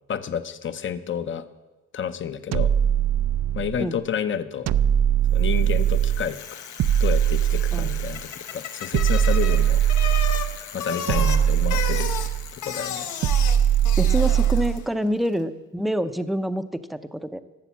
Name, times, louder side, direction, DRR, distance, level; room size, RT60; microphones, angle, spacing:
voice 1, 0.1-1.4 1.9-2.7 3.5-4.7 5.3-6.6 7.0-9.8 10.7-12.1 12.7-13.1, left 8 dB, 40° left, 12 dB, 0.7 m, -30 dB
sound 1, 2.5-3.8 4.7-6.3 6.8-8.2 8.9-10.6 11.1-12.5 13.2-14.8, right 10 dB, 60° right, 0.5 m, -21 dB
Bicycle, 5.5-14.9, left 7 dB, 75° left, 1.1 m, -34 dB
voice 2, 11.1-11.5 14.0-17.4, equal, ahead, 10 dB, 0.6 m, -27 dB
12.5 x 7.1 x 7.2 m, 1.1 s
cardioid pair, 90°, 30 cm